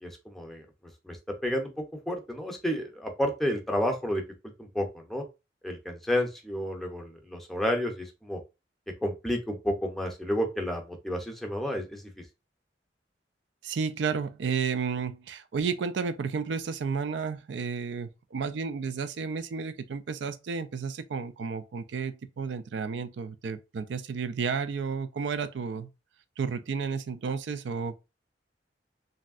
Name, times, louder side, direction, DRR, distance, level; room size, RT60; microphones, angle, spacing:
voice 1, 0.0-0.7 1.0-1.2 1.4-5.2 5.6-8.4 9.0-12.0, equal, ahead, 0.6 m, -31 dB
voice 2, 13.6-25.9 26.4-28.0, right 5 dB, 85° right, 0.4 m, -32 dB
3.0 x 2.6 x 2.4 m
head